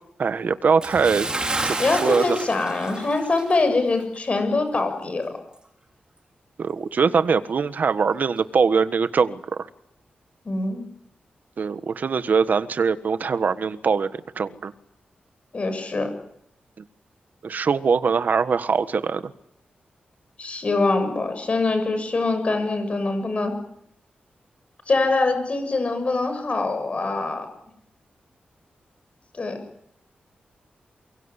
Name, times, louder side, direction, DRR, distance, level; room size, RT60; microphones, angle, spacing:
voice 1, 0.2-1.3 1.6-2.4 6.6-9.7 11.6-14.7 17.4-19.3, right 5 dB, 60° right, 13 dB, 1.5 m, -22 dB
Bathtub (filling or washing) / Splash splatter, 0.8-3.7 4.0-4.2 4.7-4.8, right 2 dB, 25° right, 5.2 m, -30 dB
voice 2, 1.8-5.4 10.5-10.9 15.5-16.1 20.4-23.6 24.9-27.5 29.3-29.6, left 3 dB, 40° left, 7 dB, 7.2 m, -24 dB
23.5 x 22.5 x 10.0 m, 0.75 s
wide cardioid pair, 125°, 3 cm